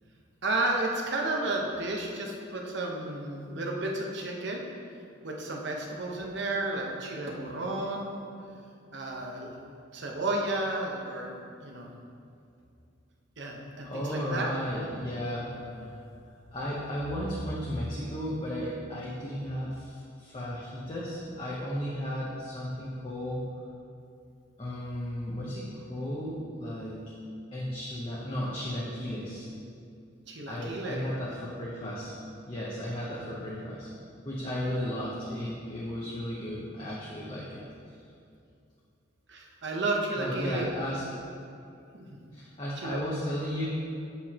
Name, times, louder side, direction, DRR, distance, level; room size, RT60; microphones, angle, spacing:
voice 1, 0.4-4.6 5.2-8.3 8.9-9.6 9.9-11.3 11.6-11.9 13.4-14.5 30.3-31.0 39.3-40.7 41.9-42.2 42.8-43.0, right 2 dB, 65° right, 0 dB, 1.0 m, -32 dB
voice 2, 13.8-16.0 16.5-23.5 24.6-27.0 27.5-29.5 30.5-32.1 32.5-33.9 34.2-37.6 40.1-41.0 42.3-43.7, equal, 25° left, -6 dB, 0.8 m, -34 dB
8.1 x 7.2 x 2.9 m, 2.4 s
head